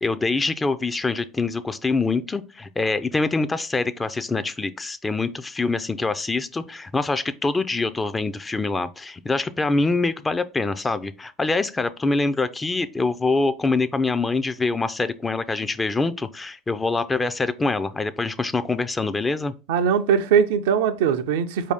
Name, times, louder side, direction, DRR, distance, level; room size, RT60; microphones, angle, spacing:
voice 1, 0.0-19.5, left 3 dB, 20° left, 0.4 m, -25 dB
voice 2, 19.7-21.7, right 7 dB, 70° right, 0.4 m, -20 dB
4.6 x 2.7 x 3.4 m
hypercardioid pair, 75°, 0 cm